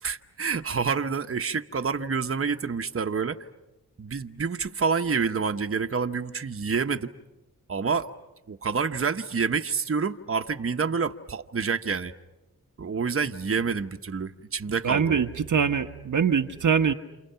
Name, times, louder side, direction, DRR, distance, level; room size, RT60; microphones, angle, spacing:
voice 1, 0.0-3.5 4.0-7.1 7.7-8.1 8.5-12.1 12.8-15.2, right 5 dB, 40° right, 7 dB, 1.1 m, -28 dB
voice 2, 14.8-16.9, right 6 dB, 55° right, 5 dB, 1.0 m, -23 dB
29.0 x 28.5 x 5.8 m, 1.0 s
cardioid pair, 45°, 36 cm